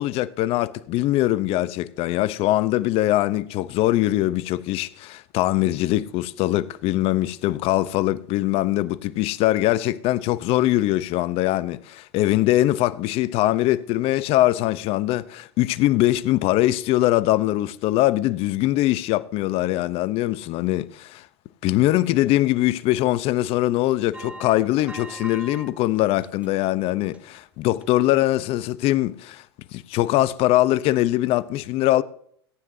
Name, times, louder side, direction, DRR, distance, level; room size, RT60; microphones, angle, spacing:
voice 1, 0.0-21.3 21.6-29.4 29.7-32.0, left 15 dB, 45° left, 0.7 m, -22 dB
sound 1, 24.1-25.7 26.1-26.7 27.1-27.3 27.8-27.9, right 2 dB, 10° right, 1.2 m, -40 dB
18.0 x 9.5 x 2.7 m
hypercardioid pair, 105°, 14 cm